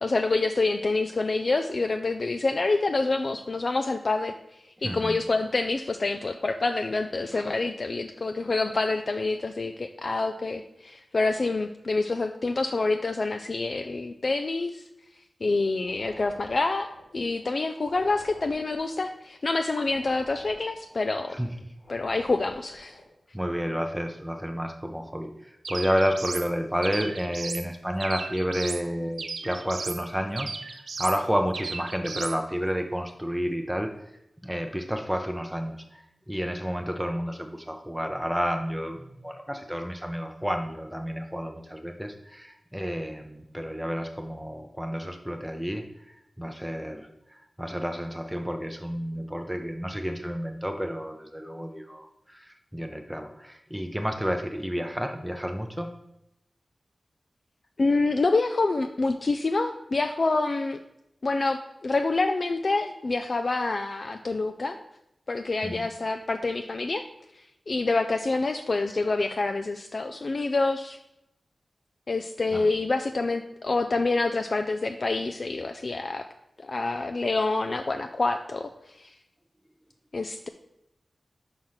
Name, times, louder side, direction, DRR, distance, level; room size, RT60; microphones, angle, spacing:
voice 1, 0.0-4.3 4.8-14.8 15.4-21.4 21.9-23.0 57.8-60.8 61.2-64.8 65.3-67.1 67.7-71.0 72.1-76.3 76.6-79.1 80.1-80.5, left 3 dB, 55° left, 7 dB, 0.4 m, -27 dB
voice 2, 4.8-5.2 7.3-7.5 21.3-21.6 23.3-33.9 34.4-55.9 65.6-65.8 72.5-72.6, equal, 5° right, 4 dB, 0.6 m, -31 dB
sound 1, 15.8-23.1, left 1 dB, 70° left, 2.5 m, -49 dB
sound 2, 25.6-26.5 26.8-27.7 28.0-28.8 29.2-30.0 30.4-31.2 31.5-32.4, right 4 dB, 90° right, 0.6 m, -36 dB
6.3 x 4.5 x 5.6 m, 0.85 s
wide cardioid pair, 85°, 0 cm